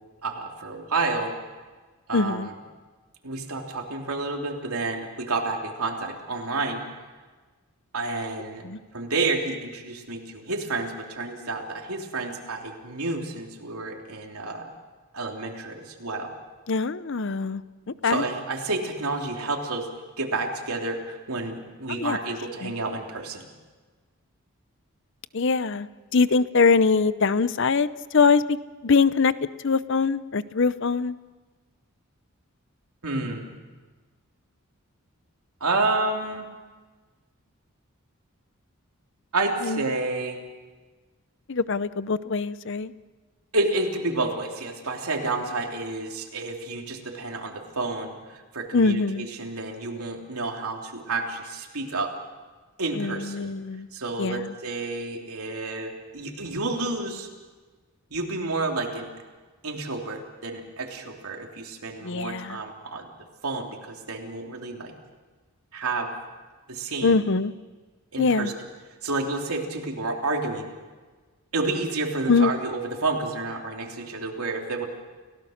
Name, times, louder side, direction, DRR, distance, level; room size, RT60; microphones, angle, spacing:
voice 1, 0.2-1.3 2.1-2.5 3.2-6.8 7.9-8.6 8.9-14.7 15.1-16.3 18.0-19.9 20.2-23.5 33.0-33.6 35.6-36.5 39.3-40.4 43.5-52.1 52.8-53.6 53.9-57.3 58.1-59.1 59.6-63.1 63.4-64.9 65.7-66.1 66.7-67.2 68.1-68.5 69.0-70.7 71.5-74.8, right 3 dB, 85° right, 1 dB, 3.2 m, -30 dB
voice 2, 2.1-2.5 8.6-8.8 16.7-17.6 18.0-18.2 21.9-22.2 22.6-22.7 25.3-28.6 28.8-29.3 29.6-31.2 39.6-39.8 41.5-42.9 48.7-49.3 52.9-53.9 54.2-54.5 62.0-62.6 67.0-67.5 68.2-68.5 72.3-72.5, left 4 dB, 55° left, 15 dB, 0.7 m, -23 dB
30.0 x 17.0 x 6.5 m, 1.3 s
head